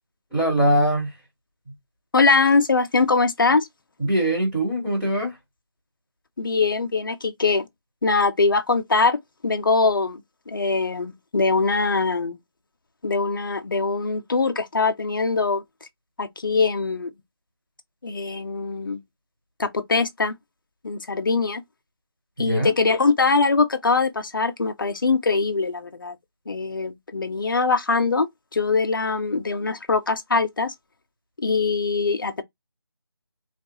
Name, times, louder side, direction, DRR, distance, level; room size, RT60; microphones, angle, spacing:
voice 1, 0.3-1.1 4.0-5.3 22.5-22.7, right 1 dB, ahead, 0.6 m, -22 dB
voice 2, 2.1-3.7 6.4-7.7 8.0-12.4 13.0-15.6 16.2-17.1 18.0-19.0 19.6-20.3 20.8-21.6 22.4-26.2 26.5-28.3 28.5-30.7 31.4-32.4, left 4 dB, 50° left, 0.5 m, -22 dB
3.4 x 2.3 x 2.8 m
figure-of-eight pair, 170°, 14 cm